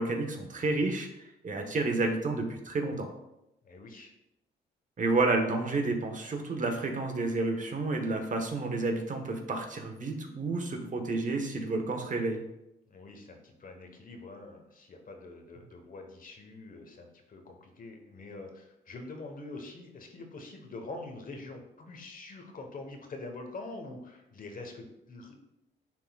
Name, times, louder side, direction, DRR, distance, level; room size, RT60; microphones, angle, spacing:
voice 1, 0.0-3.1 5.0-12.4, right 3 dB, 40° right, 4 dB, 1.2 m, -30 dB
voice 2, 3.6-4.1 12.9-25.4, left 2 dB, 45° left, 3 dB, 1.2 m, -45 dB
10.5 x 3.8 x 2.4 m, 0.87 s
cardioid pair, 70°, 19 cm